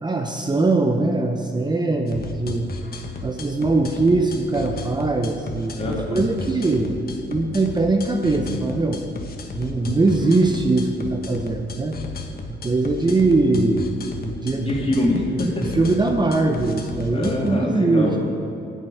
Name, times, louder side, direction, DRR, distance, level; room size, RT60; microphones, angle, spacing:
voice 1, 0.0-2.7 3.2-7.0 7.3-9.0 9.5-12.0 12.5-13.9 14.2-14.7 15.7-18.1, right 3 dB, 20° right, 4 dB, 0.9 m, -21 dB
sound 1, 2.1-17.5, left 3 dB, 50° left, 1.4 m, -34 dB
voice 2, 5.8-6.2 14.5-15.8 17.1-18.2, left 1 dB, 30° left, -2 dB, 3.0 m, -24 dB
10.5 x 6.6 x 9.2 m, 2.7 s
cardioid pair, 90°, 20 cm